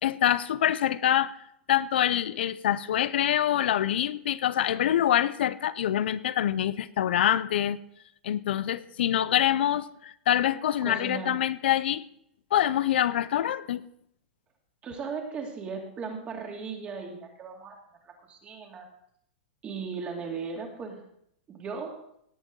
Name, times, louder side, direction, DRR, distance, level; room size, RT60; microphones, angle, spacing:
voice 1, 0.0-1.3 1.7-7.8 8.2-12.0 12.5-13.8, left 11 dB, 80° left, 16 dB, 0.5 m, -25 dB
voice 2, 10.8-11.4 14.8-17.7 18.0-18.9 19.6-21.0 21.5-22.0, right 5 dB, 20° right, 1 dB, 2.5 m, -37 dB
17.5 x 8.1 x 3.8 m, 0.71 s
supercardioid pair, 155°, 6 cm